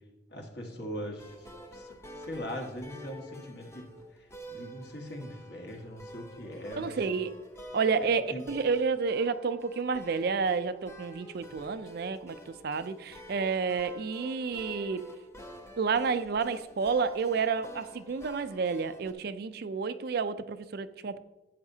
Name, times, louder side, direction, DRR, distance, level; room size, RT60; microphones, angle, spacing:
voice 1, 0.3-1.3 1.7-1.9 2.1-3.9 4.5-7.0 8.0-8.5, equal, 60° left, 1 dB, 1.6 m, -40 dB
sound 1, 1.2-19.1, equal, 15° left, 0.7 m, -48 dB
voice 2, 6.8-7.3 7.7-15.0 15.8-21.2, right 5 dB, 55° right, 12 dB, 0.4 m, -30 dB
11.5 x 8.1 x 2.8 m, 1.1 s
head